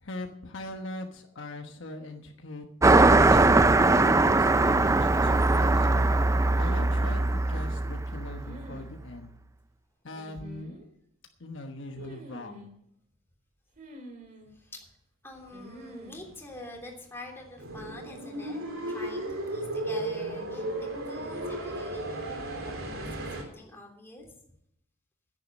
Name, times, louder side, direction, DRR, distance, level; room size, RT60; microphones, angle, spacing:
voice 1, 0.0-2.6 3.2-9.3 10.0-10.8 11.4-12.7, left 1 dB, 60° left, 4 dB, 1.2 m, -41 dB
Car passing by, 2.8-8.6, right 2 dB, 15° right, 0.4 m, -21 dB
sound 1, 6.4-7.1 8.4-8.9 9.1-9.2 10.1-10.8 12.0-12.7 13.8-14.5 15.5-16.3, equal, 40° right, 2.6 m, -46 dB
voice 2, 14.5-14.9 15.2-18.6 18.9-24.3, left 2 dB, 10° left, -1 dB, 3.2 m, -46 dB
sound 2, 17.6-23.4, right 1 dB, 75° right, 3.5 m, -34 dB
10.5 x 10.5 x 6.4 m, 0.76 s
head